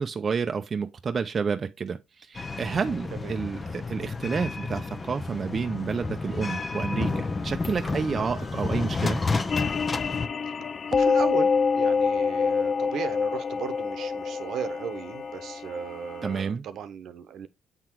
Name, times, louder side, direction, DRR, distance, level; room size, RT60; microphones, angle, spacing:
voice 1, 0.0-9.2 16.2-16.6, right 5 dB, 40° right, 0.6 m, -30 dB
sound 1, 2.3-10.3, left 3 dB, 30° left, 0.8 m, -31 dB
Wind instrument woodwind instrument, 5.6-10.0, left 4 dB, 75° left, 1.9 m, -51 dB
sound 2, 9.5-16.4, left 5 dB, 50° left, 0.3 m, -26 dB
voice 2, 10.9-17.5, right 8 dB, 75° right, 1.0 m, -36 dB
8.1 x 3.9 x 4.5 m
cardioid pair, 90°, 0 cm